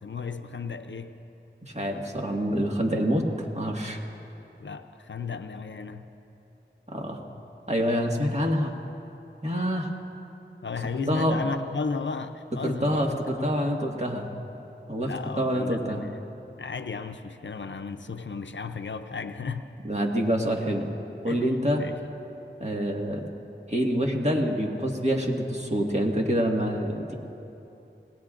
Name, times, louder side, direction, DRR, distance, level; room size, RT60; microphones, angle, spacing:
voice 1, 0.0-1.1 4.6-6.1 10.6-13.6 15.0-16.2 16.6-19.6 21.3-21.5 21.8-22.0, left 5 dB, 75° left, 8 dB, 0.6 m, -34 dB
voice 2, 1.7-4.0 6.9-7.2 7.7-8.7 9.4-9.9 11.1-11.4 12.6-14.3 14.9-15.1 15.4-16.0 19.8-20.9 21.2-21.8 22.6-23.2 23.7-27.1, equal, 35° right, 0 dB, 1.7 m, -26 dB
25.5 x 18.0 x 2.5 m, 2.9 s
wide cardioid pair, 40°, 19 cm